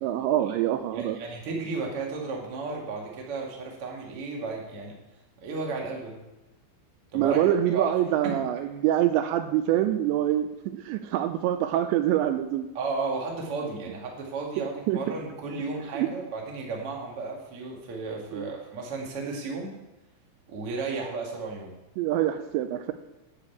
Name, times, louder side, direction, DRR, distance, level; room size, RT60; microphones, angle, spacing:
voice 1, 0.0-1.2 7.1-12.7 14.6-15.0 15.9-16.1 18.3-18.5 22.0-22.9, right 12 dB, 85° right, 8 dB, 2.8 m, -25 dB
voice 2, 0.9-5.0 5.4-6.2 7.1-7.9 8.2-8.3 12.7-19.8 20.5-21.7, right 3 dB, 45° right, -1 dB, 2.0 m, -34 dB
10.0 x 6.7 x 8.3 m, 1.0 s
omnidirectional pair, 5.3 m